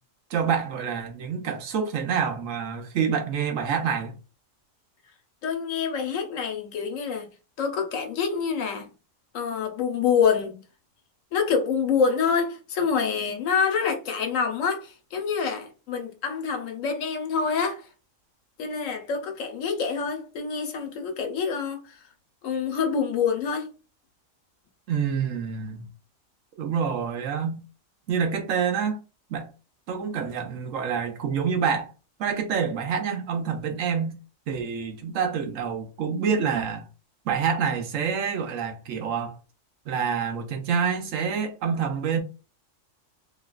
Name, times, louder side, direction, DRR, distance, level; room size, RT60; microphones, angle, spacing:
voice 1, 0.3-4.2 24.9-25.9 26.6-27.6 28.1-29.0 29.3-29.5 29.9-31.9 32.2-34.2 34.5-36.9 37.3-39.4 39.9-42.2, right 6 dB, 75° right, 1.1 m, -27 dB
voice 2, 5.4-7.3 7.6-8.9 9.3-10.6 11.3-17.9 18.6-22.0 22.4-23.7, left 6 dB, 80° left, 1.1 m, -26 dB
3.1 x 3.0 x 2.3 m
omnidirectional pair, 1.4 m